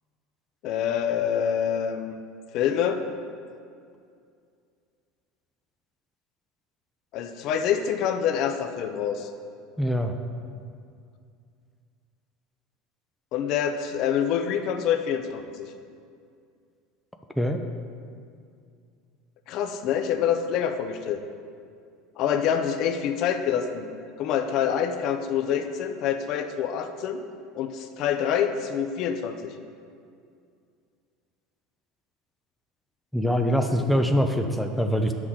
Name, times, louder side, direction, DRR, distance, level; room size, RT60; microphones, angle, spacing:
voice 1, 0.6-2.1 2.5-3.0 7.1-9.3 13.3-15.7 19.5-21.2 22.2-23.9 24.2-27.2 27.5-29.5, left 8 dB, 55° left, 7 dB, 0.6 m, -26 dB
voice 2, 9.8-10.1 17.4-17.6 33.1-35.1, equal, ahead, 4 dB, 0.5 m, -23 dB
9.6 x 6.2 x 3.7 m, 2.3 s
supercardioid pair, 130°, 0 cm